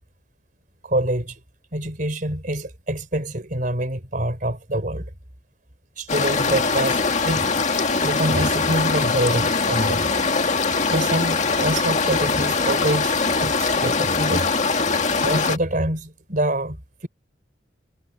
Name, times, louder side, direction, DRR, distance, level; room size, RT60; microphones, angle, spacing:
voice 1, 0.8-1.4 1.7-5.1 6.0-7.5 7.9-10.1 10.9-13.1 13.4-14.5 15.2-17.1, right 1 dB, 45° right, 4.1 m, -25 dB
sound 1, 6.1-15.6, left 4 dB, 40° left, 1.9 m, -22 dB
head